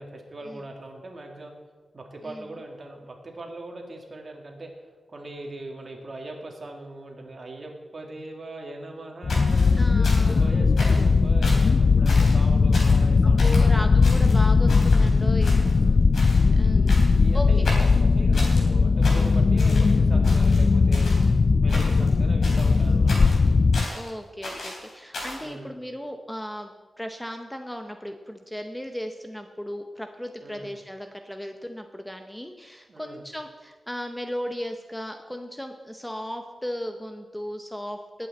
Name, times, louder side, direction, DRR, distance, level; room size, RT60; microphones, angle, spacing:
voice 1, 0.0-1.5 1.9-4.7 5.1-9.8 10.2-13.8 15.7-16.0 17.1-21.2 21.6-23.3 25.4-25.8 30.4-30.7 32.9-33.2, right 2 dB, 40° right, 1 dB, 2.2 m, -40 dB
voice 2, 2.2-2.5 9.7-10.6 13.2-15.7 16.5-17.7 23.9-26.7 27.0-38.3, equal, 5° left, 5 dB, 0.7 m, -36 dB
sound 1, 9.2-23.9, left 4 dB, 45° left, 0.3 m, -19 dB
sound 2, 9.3-10.4 10.8-11.1 11.4-11.7 12.1-12.4 12.7-13.1 13.4-13.7 14.0-15.1 15.4-15.9 16.1-16.5 16.9-17.3 17.6-18.6 19.0-19.9 20.2-21.3 21.7-22.1 22.4-24.1 24.4-25.5, left 1 dB, 70° left, 3.8 m, -36 dB
19.5 x 8.6 x 4.2 m, 1.3 s
wide cardioid pair, 135°, 0 cm